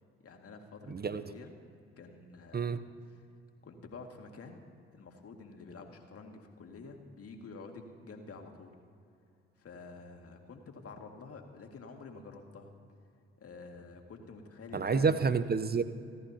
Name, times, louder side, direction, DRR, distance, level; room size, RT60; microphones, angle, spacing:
voice 1, 0.2-1.5 2.0-3.2 3.6-4.6 4.9-8.7 9.6-12.7 13.4-15.3, left 4 dB, 45° left, 3 dB, 2.3 m, -49 dB
voice 2, 0.9-1.2 2.5-2.8 14.7-15.8, right 5 dB, 30° right, 12 dB, 0.8 m, -28 dB
30.0 x 13.5 x 2.9 m, 2.5 s
figure-of-eight pair, 45°, 32 cm